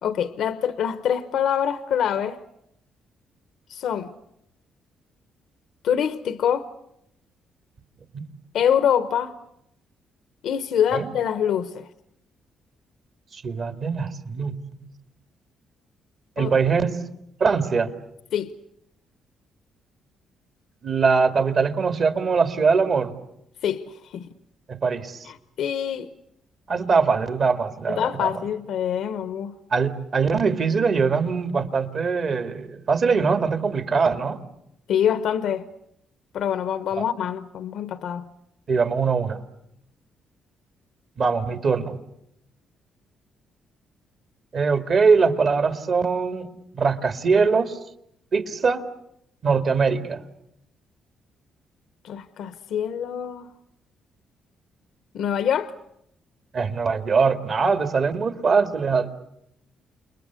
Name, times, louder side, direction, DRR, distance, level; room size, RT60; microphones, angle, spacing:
voice 1, 0.0-2.4 3.7-4.1 5.8-6.7 8.5-9.4 10.4-11.9 16.4-16.5 18.3-18.5 23.6-24.3 25.2-26.1 27.9-29.6 34.9-35.7 36.3-38.3 52.0-53.5 55.1-55.7, left 9 dB, 75° left, 1.0 m, -25 dB
voice 2, 13.3-14.9 16.4-17.0 17.4-17.9 20.8-23.1 24.7-25.3 26.7-28.4 29.7-34.4 37.0-37.1 38.7-39.4 41.2-42.0 44.5-47.8 48.3-48.8 49.4-50.2 56.5-59.1, right 5 dB, 50° right, 2.1 m, -22 dB
29.0 x 21.0 x 8.3 m
cardioid pair, 90°, 0 cm